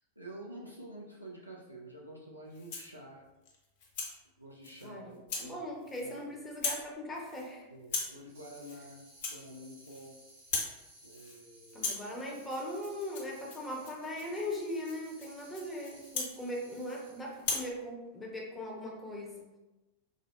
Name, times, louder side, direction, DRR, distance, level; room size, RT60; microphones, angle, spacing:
voice 1, 0.2-3.2 4.4-5.6 6.0-6.2 7.7-10.2 11.0-11.9, right 1 dB, 90° right, -3 dB, 0.4 m, -49 dB
Rattle (instrument), 2.5-3.0 3.5-4.2 4.6-4.9 5.3-5.5 5.8-6.2 6.5-6.9 7.1-7.5 7.8-8.2 8.6-8.8 9.1-10.1 10.4-10.8 11.1-11.4 11.7-17.0 17.4-17.7, left 4 dB, 50° left, 0.7 m, -39 dB
voice 2, 4.8-7.6 11.7-19.5, left 1 dB, 10° left, -2 dB, 0.6 m, -39 dB
sound 1, 8.3-17.4, right 1 dB, 60° right, 1.1 m, -58 dB
3.6 x 2.0 x 2.3 m, 1.0 s
figure-of-eight pair, 90°, 0 cm